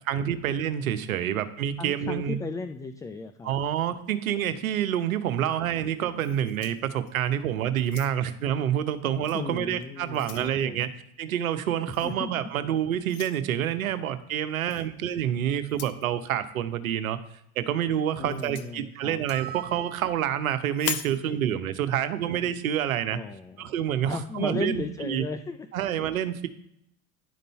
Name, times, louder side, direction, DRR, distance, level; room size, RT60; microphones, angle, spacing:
voice 1, 0.1-2.4 3.4-10.9 11.2-17.2 17.6-23.2 23.6-25.2 25.7-26.5, right 10 dB, 75° right, 12 dB, 0.8 m, -28 dB
voice 2, 1.8-3.5 9.3-10.9 12.0-12.3 18.2-19.2 23.1-23.7 24.1-25.7, left 4 dB, 10° left, 9 dB, 0.3 m, -35 dB
sound 1, 6.2-7.3 7.8-8.4 9.2-9.4 9.8-10.5 11.9-12.2 13.1-13.4 14.7-14.9 15.6-16.1 18.3-18.7 20.7-21.2, left 10 dB, 35° left, 0.7 m, -38 dB
sound 2, 19.3-20.6, right 9 dB, 25° right, 0.6 m, -42 dB
10.0 x 5.3 x 4.2 m, 0.76 s
figure-of-eight pair, 75°, 42 cm